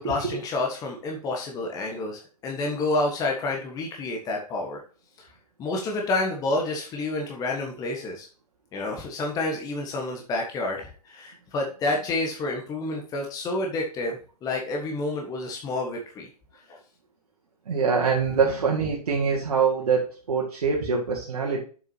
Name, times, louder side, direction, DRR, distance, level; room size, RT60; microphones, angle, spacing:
voice 1, 0.0-4.8 5.2-5.3 5.6-8.3 8.7-16.3 16.7-16.8, left 2 dB, 20° left, 1 dB, 1.4 m, -29 dB
voice 2, 17.7-21.6, right 5 dB, 65° right, -3 dB, 2.0 m, -24 dB
8.1 x 7.3 x 2.8 m, 0.39 s
figure-of-eight pair, 120°, 20 cm